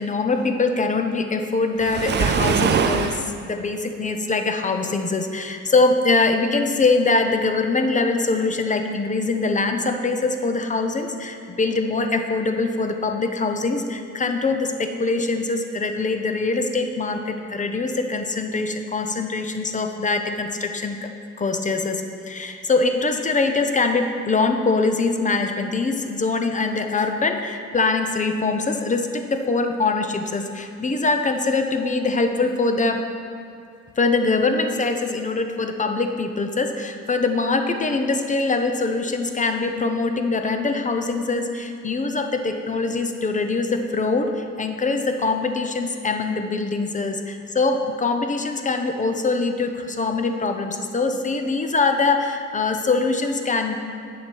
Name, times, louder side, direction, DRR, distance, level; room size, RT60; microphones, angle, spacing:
voice 1, 0.0-21.1 21.4-33.1 34.0-53.8, left 3 dB, 25° left, 5 dB, 0.7 m, -23 dB
Waves surf, 1.8-3.3, right 7 dB, 35° right, 0.4 m, -22 dB
8.3 x 6.4 x 4.5 m, 2.5 s
cardioid pair, 90°, 30 cm